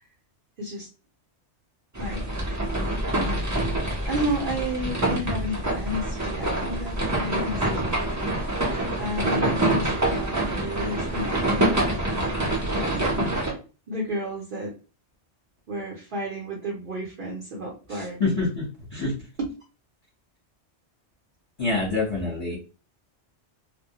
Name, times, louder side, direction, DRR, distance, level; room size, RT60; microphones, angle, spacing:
sound 1, 1.9-13.5, right 1 dB, 20° right, 0.5 m, -26 dB
voice 1, 4.1-8.0 9.0-11.7 12.6-13.3 13.9-14.7 15.7-18.4 19.4-19.5 22.2-22.4, equal, 55° right, -3 dB, 0.7 m, -32 dB
voice 2, 18.2-18.6 18.9-19.1 21.6-22.6, left 3 dB, 30° left, -6 dB, 0.9 m, -25 dB
2.1 x 2.1 x 2.8 m, 0.34 s
omnidirectional pair, 1.2 m